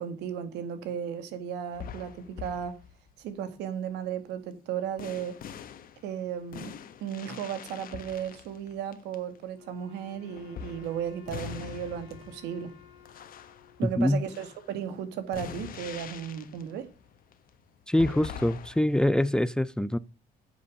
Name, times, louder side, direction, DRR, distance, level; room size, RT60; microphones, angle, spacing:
voice 1, 0.0-2.8 3.2-5.4 6.0-6.7 7.0-12.7 13.8-16.9, right 8 dB, 90° right, 2.0 m, -35 dB
sound 1, 1.7-3.2 5.0-9.4 10.1-19.1, left 8 dB, 55° left, 1.3 m, -44 dB
Wind instrument woodwind instrument, 9.5-14.7, left 9 dB, 90° left, 2.8 m, -55 dB
voice 2, 17.9-20.0, left 1 dB, 5° left, 0.5 m, -24 dB
8.7 x 7.1 x 6.5 m
cardioid pair, 110°, 17 cm